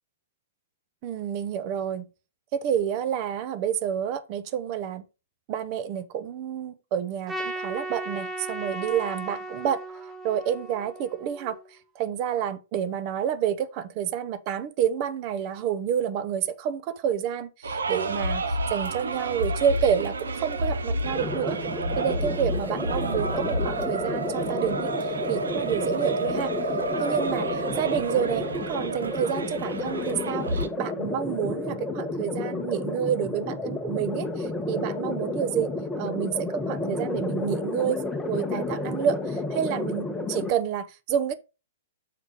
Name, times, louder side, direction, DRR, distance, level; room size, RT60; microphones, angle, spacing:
voice 1, 1.0-2.1 2.5-5.0 5.5-9.8 10.2-11.6 11.9-21.6 22.0-26.5 27.0-35.7 36.0-38.0 38.3-41.4, right 9 dB, 35° right, 0.8 m, -29 dB
Trumpet, 7.3-11.7, right 1 dB, 20° right, 1.4 m, -36 dB
sound 1, 17.6-30.7, right 2 dB, 65° right, 1.0 m, -30 dB
sound 2, 21.0-40.5, left 2 dB, 10° left, 1.0 m, -31 dB
6.8 x 4.7 x 5.2 m
figure-of-eight pair, 110°, 0 cm